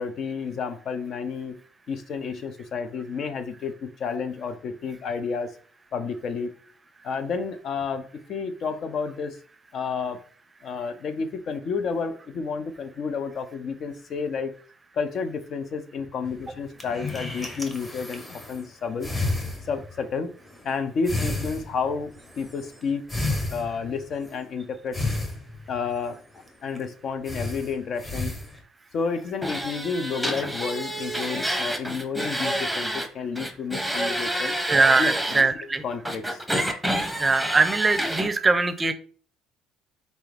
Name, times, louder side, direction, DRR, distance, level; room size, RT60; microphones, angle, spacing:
voice 1, 0.0-1.6 1.9-5.6 5.9-6.5 7.0-9.4 9.7-10.2 10.6-14.5 14.9-19.1 19.6-20.4 20.6-23.0 23.5-25.0 25.7-26.2 26.6-28.4 28.9-34.5 34.9-36.4, left 5 dB, 55° left, 9 dB, 0.6 m, -31 dB
sound 1, 16.2-18.7 19.0-20.1 20.4-20.8 21.0-24.4 24.9-26.5 26.7-26.8 27.2-28.6, left 2 dB, 20° left, 1.1 m, -32 dB
sound 2, 29.4-33.1 33.3-35.4 36.0-38.3, equal, ahead, 0.8 m, -28 dB
voice 2, 34.4-35.8 37.2-38.9, right 3 dB, 25° right, 11 dB, 0.5 m, -22 dB
4.1 x 3.4 x 3.3 m, 0.43 s
supercardioid pair, 85°, 0 cm